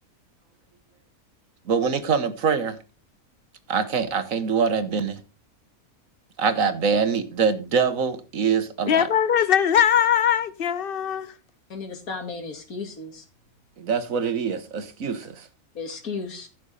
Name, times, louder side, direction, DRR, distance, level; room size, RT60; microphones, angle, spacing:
voice 1, 1.7-2.8 3.7-5.2 6.4-9.1 13.8-15.5, right 6 dB, 70° right, 1.6 m, -24 dB
voice 2, 8.9-11.3, left 9 dB, 50° left, 0.7 m, -20 dB
voice 3, 11.7-13.2 15.7-16.5, left 4 dB, 90° left, 2.5 m, -34 dB
15.0 x 6.2 x 4.1 m
omnidirectional pair, 1.5 m